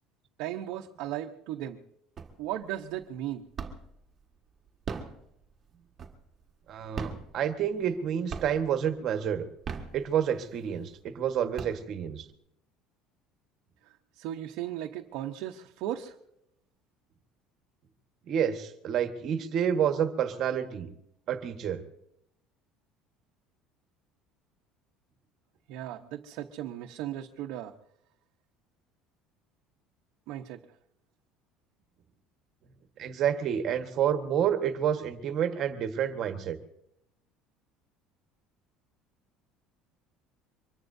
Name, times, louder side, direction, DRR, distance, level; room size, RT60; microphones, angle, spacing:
voice 1, 0.4-1.8 2.4-3.5 13.8-16.2 25.7-27.7 30.3-30.6, right 12 dB, 70° right, 2 dB, 0.9 m, -36 dB
sound 1, 2.2-2.7 3.0-4.0 4.7-6.4 6.9-8.0 8.3-8.8 9.4-10.5 11.0-11.1 11.4-12.3, right 6 dB, 30° right, 1.6 m, -39 dB
voice 2, 6.7-9.5 9.9-12.2 18.3-20.9 21.3-21.8 33.0-36.6, right 9 dB, 45° right, 7 dB, 1.4 m, -29 dB
24.5 x 21.5 x 2.7 m, 0.76 s
cardioid pair, 155°, 0 cm